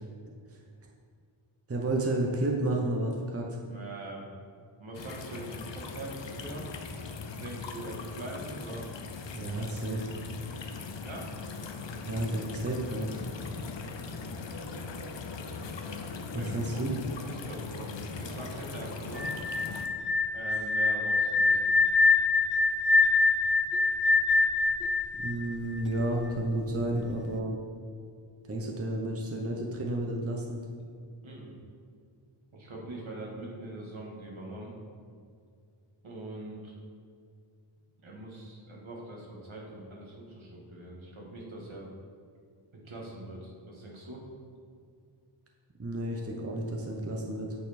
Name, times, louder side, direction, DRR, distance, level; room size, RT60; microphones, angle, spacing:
voice 1, 1.7-3.6 9.3-10.0 12.1-13.2 16.3-16.9 25.2-27.6 28.5-30.6 45.8-47.5, right 1 dB, 30° right, 0 dB, 0.8 m, -31 dB
voice 2, 3.6-4.3 4.8-6.7 7.3-8.9 9.8-10.0 11.0-11.3 13.5-13.7 16.3-16.8 17.2-19.3 20.3-21.7 31.2-31.5 32.5-34.7 36.0-36.7 38.0-41.9 42.7-44.2, right 2 dB, 70° right, -3 dB, 1.6 m, -42 dB
sound 1, 4.9-19.9, left 4 dB, 60° left, 0.7 m, -40 dB
sound 2, 19.1-26.1, left 3 dB, ahead, 0.4 m, -24 dB
8.3 x 4.3 x 4.3 m, 2.2 s
wide cardioid pair, 45°, 49 cm